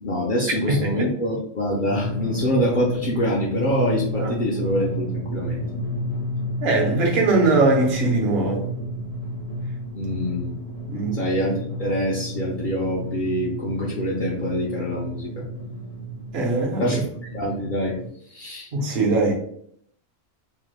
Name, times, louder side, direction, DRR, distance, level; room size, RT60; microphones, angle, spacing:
voice 1, 0.0-5.6 9.9-10.5 11.1-15.3 16.8-17.1 17.3-17.9 18.3-18.7, equal, 55° left, -4 dB, 0.7 m, -25 dB
voice 2, 0.7-1.1 4.2-4.3 6.6-8.6 10.8-11.2 16.3-17.0 18.7-19.3, right 3 dB, 70° right, 0 dB, 1.0 m, -21 dB
Drum, 1.9-18.1, equal, 70° left, 1.2 m, -31 dB
3.2 x 2.9 x 2.3 m, 0.66 s
omnidirectional pair, 1.1 m